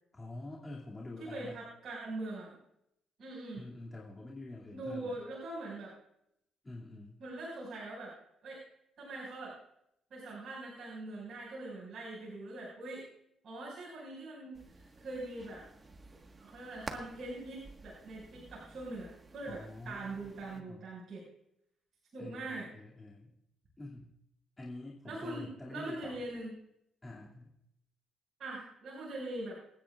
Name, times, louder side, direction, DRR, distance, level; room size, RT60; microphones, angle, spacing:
voice 1, 0.1-1.6 3.5-5.2 6.6-7.2 19.4-20.8 22.2-23.3 23.8-24.1 24.6-26.2 27.0-27.5, left 2 dB, 20° left, -4 dB, 2.5 m, -47 dB
voice 2, 1.2-2.6 3.2-3.6 4.7-5.9 7.2-8.1 8.4-8.6 9.0-9.6 10.1-13.1 13.4-15.6 16.4-21.2 22.1-22.7 25.0-26.6 28.4-29.6, right 2 dB, 55° right, -6 dB, 5.7 m, -42 dB
sound 1, 14.5-20.6, right 3 dB, 30° right, 1.5 m, -51 dB
28.0 x 9.8 x 2.5 m, 0.77 s
cardioid pair, 90°, 0 cm